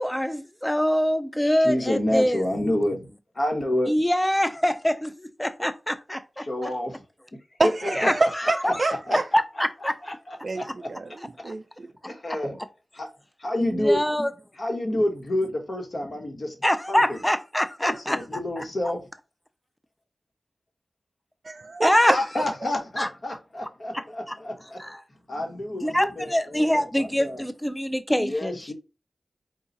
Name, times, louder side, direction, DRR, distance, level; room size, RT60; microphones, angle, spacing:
voice 1, 0.0-2.4 3.9-6.7 7.8-8.8 9.3-10.2 10.6-10.7 11.4-11.5 13.6-14.3 16.6-18.6 21.8-22.4 23.0-23.1 23.9-24.4 24.8-25.0 25.7-28.7, equal, 10° left, 0.5 m, -25 dB
voice 2, 1.4-3.0 3.3-3.9 6.4-7.0 7.6-7.9 8.6-8.7 9.1-9.2 10.1-10.2 10.5-10.9 12.0-12.6 12.9-13.1 13.4-14.0 14.6-16.6 16.9-17.2 17.8-19.0 22.0-24.8 25.3-27.4 28.2-28.7, left 1 dB, 55° left, 1.3 m, -28 dB
voice 3, 7.6-9.2 10.4-11.9 21.4-22.1, right 3 dB, 55° right, 0.3 m, -27 dB
4.6 x 2.4 x 4.0 m
wide cardioid pair, 80°, 0 cm